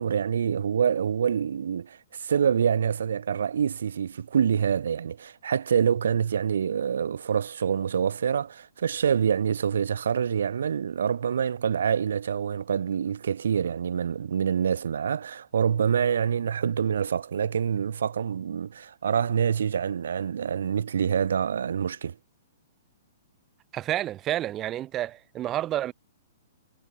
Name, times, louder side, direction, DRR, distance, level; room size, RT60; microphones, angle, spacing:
voice 1, 0.0-22.2, right 7 dB, 80° right, 2.5 m, -26 dB
voice 2, 23.7-25.9, right 13 dB, 25° right, 2.2 m, -29 dB
hypercardioid pair, 140°, 0 cm